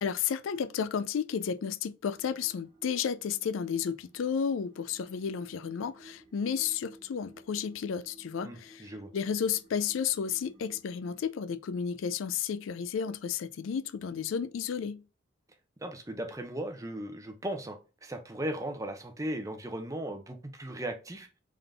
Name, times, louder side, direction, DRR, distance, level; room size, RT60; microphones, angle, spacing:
voice 1, 0.0-8.8 9.1-15.0, left 7 dB, 80° left, 0.4 m, -32 dB
sound 1, 2.1-11.2, right 1 dB, 40° right, 1.7 m, -57 dB
voice 2, 8.4-9.1 15.8-21.3, right 1 dB, 15° right, 0.7 m, -37 dB
3.9 x 3.7 x 3.3 m
head